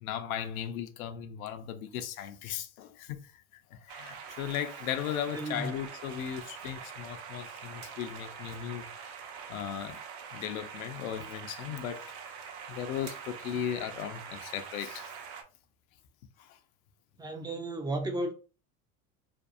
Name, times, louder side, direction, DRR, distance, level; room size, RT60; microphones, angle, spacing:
voice 1, 0.0-8.9 9.5-10.0 10.3-12.1 12.7-15.1 16.4-16.6, left 9 dB, 75° left, 0.6 m, -37 dB
sound 1, 3.9-15.4, right 6 dB, 55° right, 0.7 m, -44 dB
voice 2, 5.3-5.7 17.2-18.3, right 2 dB, 10° right, 0.3 m, -33 dB
2.6 x 2.3 x 2.5 m
hypercardioid pair, 85°, 42 cm